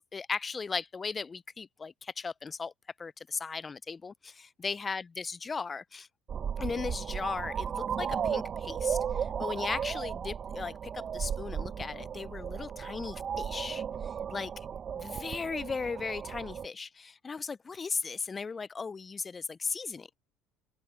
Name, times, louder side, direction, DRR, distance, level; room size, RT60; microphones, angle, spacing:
voice 1, 0.0-2.7 3.0-6.1 6.6-13.8 14.3-14.7 14.9-20.2, left 5 dB, 30° left, 0.3 m, -37 dB
sound 1, 6.3-16.7, right 8 dB, 40° right, 0.7 m, -35 dB
open air
hypercardioid pair, 75°, 0 cm